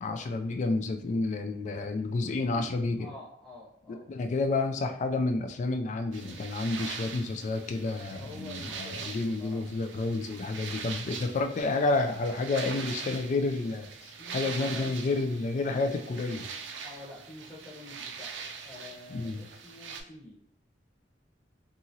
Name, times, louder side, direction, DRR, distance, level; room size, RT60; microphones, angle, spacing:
voice 1, 0.0-3.1 4.1-16.5 19.1-19.4, left 3 dB, 40° left, 6 dB, 0.3 m, -30 dB
voice 2, 2.1-4.1 7.9-9.6 14.2-15.9 16.8-18.3 18.6-20.4, left 1 dB, 5° left, -8 dB, 0.9 m, -48 dB
sound 1, 6.1-20.0, right 5 dB, 80° right, 0.4 m, -42 dB
2.9 x 2.4 x 2.7 m, 0.67 s
head